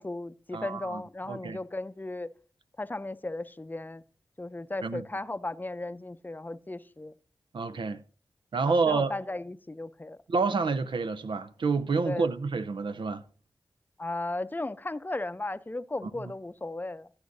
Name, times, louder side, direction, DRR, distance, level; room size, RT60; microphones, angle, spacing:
voice 1, 0.0-2.3 2.8-4.0 4.4-7.1 8.7-10.2 12.0-12.3 14.0-17.1, left 2 dB, 25° left, 0.5 m, -35 dB
voice 2, 0.5-1.0 1.3-1.6 4.8-5.0 7.5-8.0 8.5-9.1 10.3-13.2, right 4 dB, 80° right, 0.6 m, -28 dB
16.0 x 9.7 x 2.7 m
cardioid pair, 45°, 8 cm